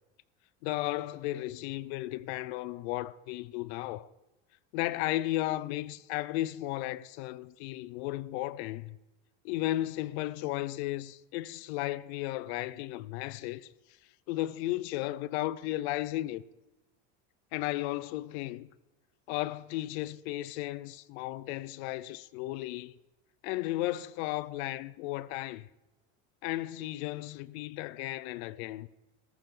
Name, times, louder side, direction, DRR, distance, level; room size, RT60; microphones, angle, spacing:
voice 1, 0.6-4.1 4.7-9.0 9.4-13.7 14.3-16.4 17.5-18.7 19.3-22.9 23.4-25.7 26.4-28.9, left 16 dB, 75° left, 0.7 m, -34 dB
14.0 x 12.0 x 3.8 m
cardioid pair, 170°, 33 cm